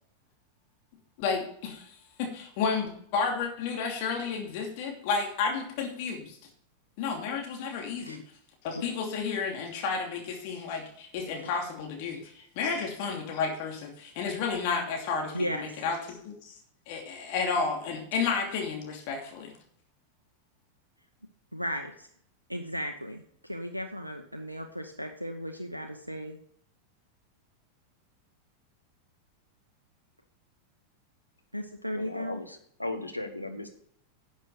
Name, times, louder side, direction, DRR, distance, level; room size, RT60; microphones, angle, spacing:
voice 1, 1.2-6.4 7.0-8.2 8.6-16.5 16.9-19.5, left 5 dB, 45° left, 1 dB, 2.8 m, -32 dB
voice 2, 15.3-15.8 21.5-22.1 22.5-26.4 31.5-32.4, equal, 90° right, 4 dB, 0.9 m, -36 dB
voice 3, 31.9-33.7, left 2 dB, 85° left, 5 dB, 1.5 m, -36 dB
11.5 x 7.5 x 5.0 m, 0.65 s
figure-of-eight pair, 90°, 0 cm